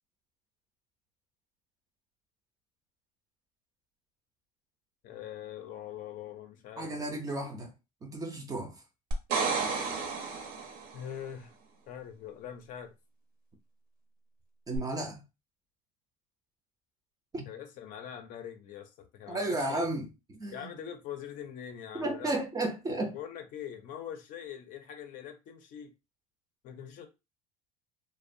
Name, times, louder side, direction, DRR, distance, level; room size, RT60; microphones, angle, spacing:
voice 1, 5.0-7.0 10.9-11.6 11.9-12.9 17.5-19.8 20.5-22.3 23.0-25.9 26.6-27.1, left 9 dB, 45° left, 0.5 m, -43 dB
voice 2, 6.8-7.7 8.0-8.8 14.7-15.2 17.3-17.5 19.3-20.7 22.0-23.1, right 2 dB, 20° right, 0.5 m, -33 dB
sound 1, 9.1-11.0 14.7-14.8, right 4 dB, 70° right, 0.7 m, -31 dB
2.7 x 2.1 x 2.5 m
cardioid pair, 140°, 19 cm